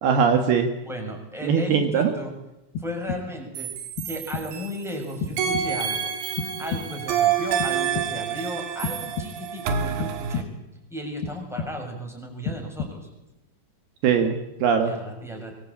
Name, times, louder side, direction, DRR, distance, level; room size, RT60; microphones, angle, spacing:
voice 1, 0.0-0.7 1.4-2.1 14.0-14.9, right 6 dB, 70° right, 6 dB, 3.3 m, -21 dB
voice 2, 0.8-2.3 2.8-3.7 4.0-6.1 6.6-10.5 10.9-13.1 14.8-15.5, equal, ahead, 1 dB, 6.4 m, -35 dB
sound 1, 2.8-3.5 4.0-4.7 5.2-6.0 6.4-7.2 7.6-8.4 8.8-9.6 10.0-10.8 11.2-12.0 12.4-13.3, left 5 dB, 75° left, 3.2 m, -34 dB
sound 2, 3.6-4.9 5.4-10.4, right 8 dB, 85° right, 4.4 m, -28 dB
24.0 x 23.0 x 8.7 m, 0.93 s
omnidirectional pair, 5.0 m